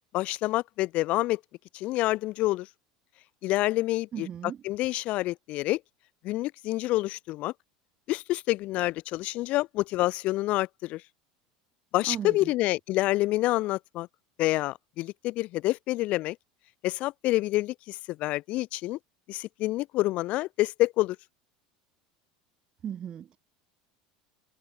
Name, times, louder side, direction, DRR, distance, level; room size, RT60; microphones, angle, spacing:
voice 1, 0.1-1.4 1.7-2.7 3.4-4.3 4.6-5.8 6.2-7.5 8.1-11.0 11.9-14.1 14.4-16.4 16.8-19.0 19.3-21.2, left 18 dB, 55° left, 0.5 m, -27 dB
voice 2, 4.1-4.6 12.1-12.5 22.8-23.4, right 9 dB, 40° right, 1.6 m, -36 dB
supercardioid pair, 100°, 3 cm